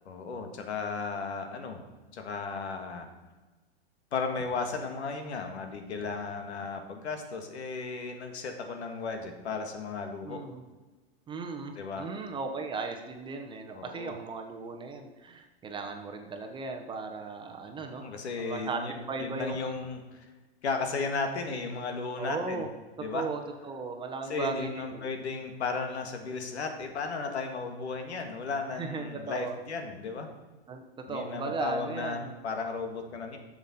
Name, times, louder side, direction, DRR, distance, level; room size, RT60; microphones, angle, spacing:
voice 1, 0.1-1.8 2.1-3.1 4.1-10.4 11.8-12.1 13.7-14.1 17.8-20.3 20.6-22.7 23.0-23.3 24.3-30.3 31.1-33.4, left 4 dB, 85° left, 5 dB, 1.7 m, -35 dB
voice 2, 10.2-10.6 11.3-18.1 18.4-18.8 19.1-19.8 22.2-22.7 23.1-25.1 28.8-29.5 30.7-32.3, right 4 dB, 15° right, 4 dB, 0.8 m, -36 dB
10.5 x 7.2 x 4.2 m, 1.2 s
hypercardioid pair, 135°, 32 cm